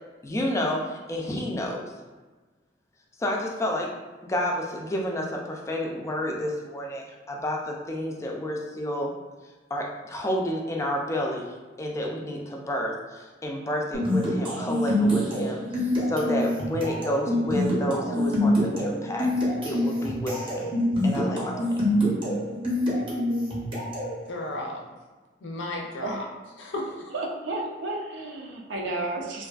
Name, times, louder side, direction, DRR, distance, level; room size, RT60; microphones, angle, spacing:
voice 1, 0.2-1.9 3.2-3.9 4.2-9.1 9.7-11.5 11.8-19.3 19.7-20.7 21.0-21.9, left 1 dB, 15° left, 0 dB, 0.3 m, -30 dB
sound 1, 13.9-24.2, left 1 dB, 30° right, 0.6 m, -26 dB
voice 2, 24.3-24.9 25.4-26.3 26.6-27.1, left 1 dB, 80° left, 0 dB, 0.5 m, -34 dB
voice 3, 27.1-29.5, right 2 dB, 85° right, 0 dB, 0.4 m, -32 dB
2.5 x 2.3 x 2.2 m, 1.3 s
head